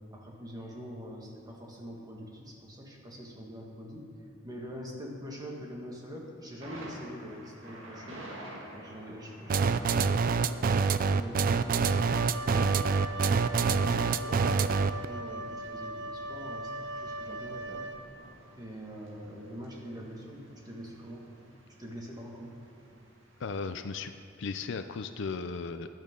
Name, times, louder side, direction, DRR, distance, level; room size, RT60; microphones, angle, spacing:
voice 1, 0.1-4.1 4.4-8.2 8.7-12.7 13.3-17.8 18.5-21.2 21.8-22.6, equal, 20° right, -2 dB, 1.8 m, -44 dB
Thunder, 6.6-24.1, right 1 dB, 85° right, 2.0 m, -52 dB
sound 1, 9.5-15.0, right 5 dB, 45° right, 0.4 m, -26 dB
Wind instrument woodwind instrument, 11.8-18.3, right 1 dB, 65° right, 0.8 m, -39 dB
voice 2, 23.4-24.1 24.4-25.9, left 4 dB, 65° left, 8 dB, 0.5 m, -36 dB
13.5 x 11.0 x 3.8 m, 2.7 s
head